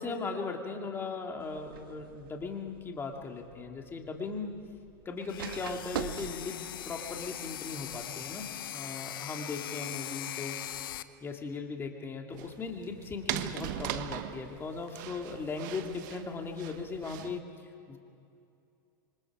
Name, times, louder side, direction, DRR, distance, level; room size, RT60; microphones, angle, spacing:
voice 1, 0.0-4.5 5.0-10.6 11.2-17.4 17.9-18.0, left 4 dB, 20° left, 2 dB, 2.6 m, -38 dB
sound 1, 1.4-8.6, right 9 dB, 85° right, 1.5 m, -45 dB
sound 2, 5.3-11.0, left 12 dB, 80° left, 0.9 m, -40 dB
sound 3, 12.3-17.4, right 12 dB, 60° right, 1.2 m, -40 dB
27.5 x 24.5 x 5.0 m, 2.6 s
supercardioid pair, 125°, 11 cm